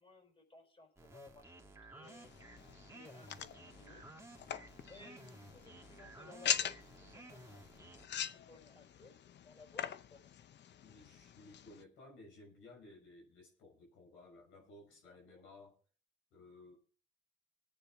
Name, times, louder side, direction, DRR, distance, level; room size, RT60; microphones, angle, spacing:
voice 1, 0.0-2.3 2.9-4.0 4.9-9.2 9.4-9.8 10.1-10.2 15.0-15.4, left 3 dB, 25° left, 3 dB, 4.9 m, -59 dB
sound 1, 1.0-8.1, right 2 dB, 15° right, 1.8 m, -56 dB
sound 2, 2.0-11.8, left 9 dB, 60° left, 0.7 m, -43 dB
voice 2, 10.8-15.8 16.3-16.8, left 2 dB, 90° left, -1 dB, 6.0 m, -57 dB
20.5 x 8.9 x 3.6 m, 0.40 s
cardioid pair, 90°, 20 cm